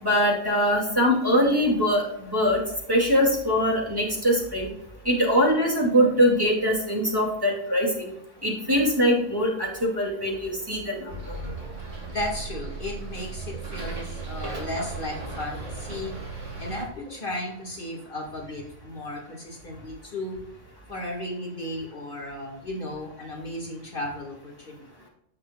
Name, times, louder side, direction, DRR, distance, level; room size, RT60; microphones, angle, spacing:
voice 1, 0.0-2.6 2.9-4.7 5.0-8.1 8.4-11.1, equal, 20° right, -2 dB, 2.5 m, -22 dB
Bus, 11.1-16.9, right 3 dB, 75° right, 2.4 m, -36 dB
voice 2, 12.1-16.1 16.4-20.4 20.9-24.9, left 1 dB, 45° left, -1 dB, 2.0 m, -35 dB
15.5 x 5.9 x 2.3 m, 0.76 s
omnidirectional pair, 1.3 m